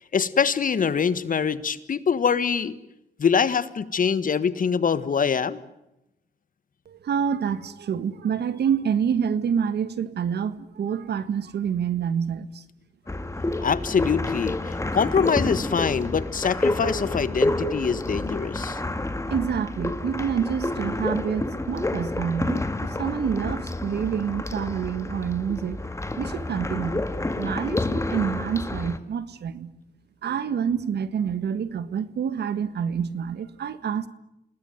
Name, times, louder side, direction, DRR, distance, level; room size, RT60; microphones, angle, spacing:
voice 1, 0.1-2.7 3.2-5.6 13.6-18.8, left 6 dB, 50° left, 1.6 m, -24 dB
voice 2, 6.8-12.6 14.8-14.9 19.0-25.8 26.2-29.7 30.2-34.1, right 7 dB, 70° right, 1.7 m, -27 dB
sound 1, 13.1-29.0, left 2 dB, 15° left, 2.1 m, -29 dB
28.5 x 19.5 x 9.4 m
cardioid pair, 80°, 18 cm